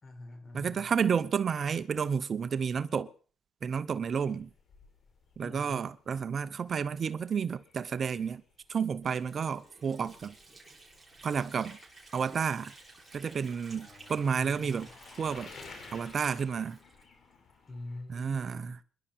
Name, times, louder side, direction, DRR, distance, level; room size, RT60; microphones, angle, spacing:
voice 1, 0.0-0.9 5.4-5.9 13.8-14.9 17.7-18.8, left 2 dB, 35° left, 5.1 m, -46 dB
voice 2, 0.5-3.1 3.6-4.5 5.4-8.4 8.7-10.3 11.2-11.8 12.1-12.7 13.1-14.9 15.2-15.5 15.9-16.8 18.1-18.8, right 6 dB, 50° right, 0.8 m, -31 dB
sound 1, 4.0-18.0, left 4 dB, 55° left, 4.1 m, -55 dB
Water / Sink (filling or washing), 9.0-17.6, right 2 dB, 10° right, 6.0 m, -55 dB
26.5 x 11.5 x 4.4 m
cardioid pair, 90°, 0 cm